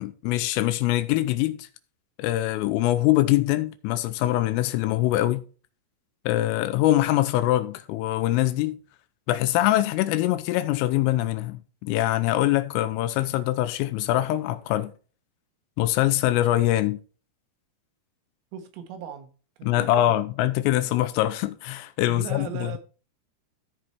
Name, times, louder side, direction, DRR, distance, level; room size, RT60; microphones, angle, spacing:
voice 1, 0.0-1.7 2.2-5.4 6.3-8.8 9.3-14.9 15.8-17.0 19.6-22.8, left 15 dB, 85° left, 3.2 m, -23 dB
voice 2, 18.5-19.3 19.6-20.2 22.1-22.8, right 8 dB, 80° right, 4.0 m, -38 dB
14.5 x 4.9 x 4.3 m
omnidirectional pair, 5.9 m